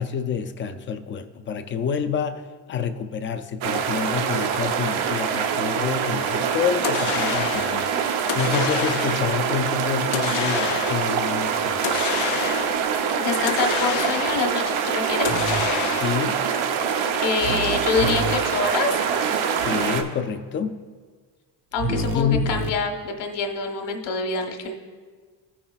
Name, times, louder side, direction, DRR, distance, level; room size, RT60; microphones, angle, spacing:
voice 1, 0.0-12.1 15.9-16.4 19.6-20.9 22.1-22.5, left 7 dB, 30° left, 8 dB, 0.4 m, -28 dB
sound 1, 3.6-20.0, right 7 dB, 90° right, 0.8 m, -24 dB
sound 2, 6.8-7.8 8.3-9.3 10.1-11.2 11.8-12.9 13.5-14.6 15.2-16.3, left 11 dB, 80° left, 0.6 m, -29 dB
voice 2, 13.1-15.3 17.1-18.9 21.7-24.7, left 4 dB, 60° left, 3 dB, 1.3 m, -26 dB
sound 3, 15.2-15.6 17.4-18.3 19.6-20.0 21.8-22.7, right 2 dB, 30° right, 0.7 m, -28 dB
16.5 x 5.6 x 2.3 m, 1.5 s
cardioid pair, 145°, 46 cm